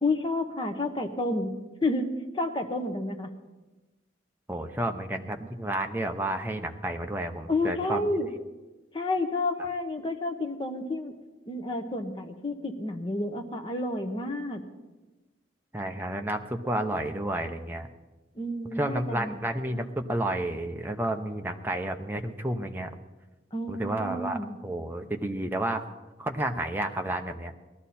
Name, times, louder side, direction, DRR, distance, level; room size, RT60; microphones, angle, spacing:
voice 1, 0.0-1.5 1.8-2.0 2.3-3.3 7.5-8.3 8.9-11.1 11.5-14.6 18.3-19.4 23.5-24.6, left 2 dB, 25° left, 4 dB, 1.1 m, -30 dB
voice 2, 4.5-8.1 15.7-17.9 18.8-22.9 23.7-25.8 26.2-27.5, right 1 dB, 10° right, 4 dB, 0.8 m, -31 dB
18.5 x 12.5 x 4.3 m, 1.2 s
head